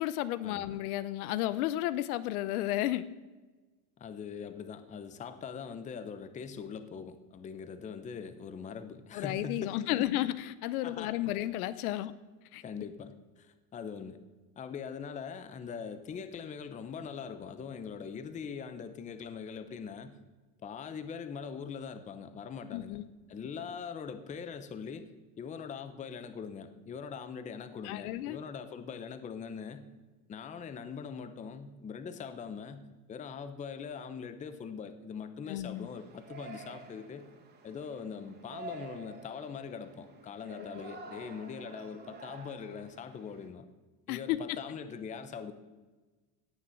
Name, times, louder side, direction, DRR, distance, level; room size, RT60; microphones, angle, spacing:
voice 1, 0.0-3.1 9.1-12.1 12.5-12.6 22.7-23.0 27.8-28.4 35.5-35.9 40.7-40.8 44.1-44.4, left 14 dB, 85° left, 15 dB, 0.9 m, -32 dB
voice 2, 4.0-10.1 10.8-11.1 12.6-14.2 14.6-20.2 20.6-23.0 23.3-25.1 25.4-29.9 30.3-37.3 37.6-43.7 44.1-45.5, left 6 dB, 15° left, 11 dB, 0.7 m, -42 dB
Yell, 35.8-43.5, right 4 dB, 25° right, 2.3 m, -49 dB
17.5 x 7.0 x 7.7 m, 1.2 s
cardioid pair, 155°, 43 cm